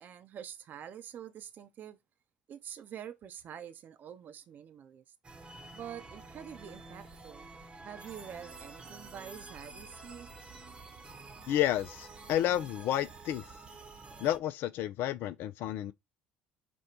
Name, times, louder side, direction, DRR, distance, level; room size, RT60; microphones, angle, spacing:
voice 1, 0.0-2.0 2.5-5.0 5.7-7.4 7.8-10.3 10.8-10.9, right 9 dB, 50° right, 0.6 m, -46 dB
sound 1, 5.2-14.4, right 3 dB, 25° right, 0.9 m, -49 dB
voice 2, 11.5-13.5 14.2-15.9, left 12 dB, 60° left, 0.4 m, -31 dB
5.1 x 2.2 x 4.3 m
hypercardioid pair, 65°, 4 cm